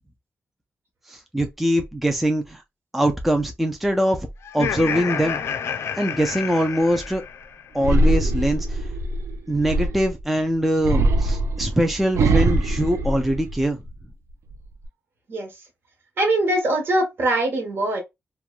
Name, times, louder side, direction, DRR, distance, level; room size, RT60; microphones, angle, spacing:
voice 1, 1.1-2.6 2.9-4.3 4.5-5.4 6.0-7.2 7.7-8.8 9.5-13.8, equal, 5° right, 0.3 m, -22 dB
Laughter, 4.4-7.7, left 7 dB, 70° left, 0.4 m, -29 dB
sound 1, 7.8-10.2 10.8-13.9 14.3-14.9, right 2 dB, 75° right, 0.4 m, -22 dB
voice 2, 16.2-18.0, right 1 dB, 55° right, 1.2 m, -22 dB
3.0 x 2.2 x 2.3 m
wide cardioid pair, 175°, 5 cm